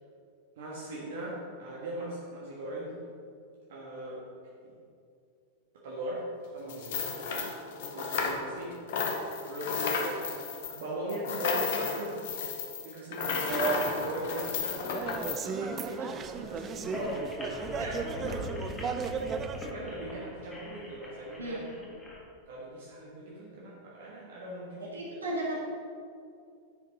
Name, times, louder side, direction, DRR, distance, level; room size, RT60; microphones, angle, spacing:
voice 1, 0.6-3.0 3.7-4.2 4.6-4.7 5.8-6.2 6.5-7.0 7.9-8.7 9.4-10.3 10.7-12.2 12.8-18.7 19.7-21.8 22.5-25.2, right 1 dB, 55° right, -6 dB, 1.5 m, -40 dB
sound 1, 6.7-8.6 8.9-15.4, left 5 dB, 55° left, 0.9 m, -33 dB
sound 2, 13.5-19.7, right 6 dB, 25° right, 0.5 m, -35 dB
sound 3, 16.8-22.2, left 1 dB, 15° left, 1.7 m, -42 dB
voice 2, 24.8-25.5, right 1 dB, 75° right, -4 dB, 1.9 m, -36 dB
10.0 x 5.1 x 4.0 m, 2.4 s
figure-of-eight pair, 90°, 0 cm